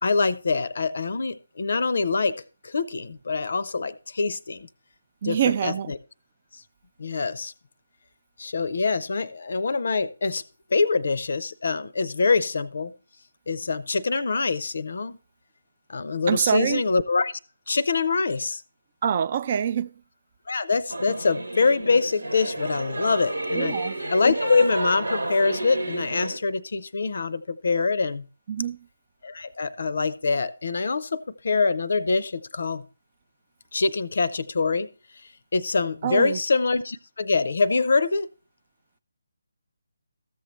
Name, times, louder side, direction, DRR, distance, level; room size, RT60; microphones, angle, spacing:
voice 1, 0.0-2.4 2.6-4.7 5.2-6.0 6.5-6.6 7.0-7.5 8.4-10.4 10.7-12.9 13.5-15.2 15.9-17.4 17.7-18.6 20.5-23.8 24.1-28.3 29.2-32.8 33.7-34.9 35.5-38.3, left 4 dB, 60° left, 0.5 m, -24 dB
voice 2, 5.2-5.9 16.3-16.8 19.0-19.9 23.5-23.9 28.5-28.8 36.0-36.4, right 8 dB, 40° right, 0.3 m, -25 dB
Singing / Musical instrument, 20.9-26.4, right 2 dB, 85° right, 1.1 m, -31 dB
14.0 x 7.1 x 3.0 m
figure-of-eight pair, 150°, 0 cm